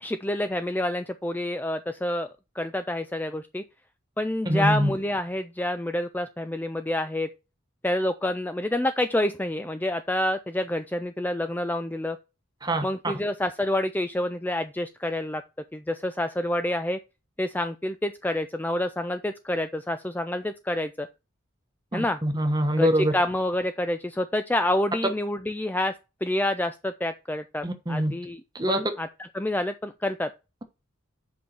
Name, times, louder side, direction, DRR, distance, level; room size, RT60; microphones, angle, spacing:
voice 1, 0.0-3.6 4.2-7.3 7.8-12.2 12.8-15.4 15.7-17.0 17.4-21.1 21.9-22.2 22.8-25.9 26.2-28.4 28.7-30.3, left 1 dB, 10° left, 0.3 m, -28 dB
voice 2, 4.5-4.9 12.6-12.9 21.9-23.1 27.6-28.1 28.5-28.8, right 1 dB, 20° right, 1.1 m, -24 dB
7.7 x 5.4 x 4.3 m
head